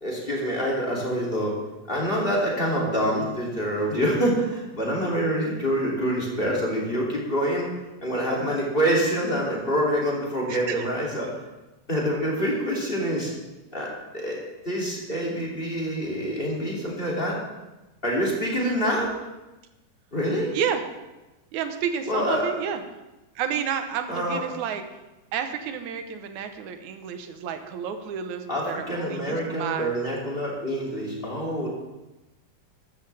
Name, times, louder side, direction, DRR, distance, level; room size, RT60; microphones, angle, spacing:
voice 1, 0.0-1.5 1.9-7.7 8.0-11.3 11.9-13.3 13.7-14.4 14.6-17.4 18.0-19.1 20.1-20.5 22.1-22.5 24.1-24.4 28.5-31.7, equal, 15° left, -3 dB, 2.3 m, -26 dB
voice 2, 10.5-10.9 12.4-12.5 18.6-19.0 20.5-20.8 21.5-22.8 23.4-24.8 25.3-29.9, right 8 dB, 70° right, 7 dB, 2.0 m, -30 dB
14.0 x 13.5 x 3.4 m, 1.1 s
omnidirectional pair, 4.2 m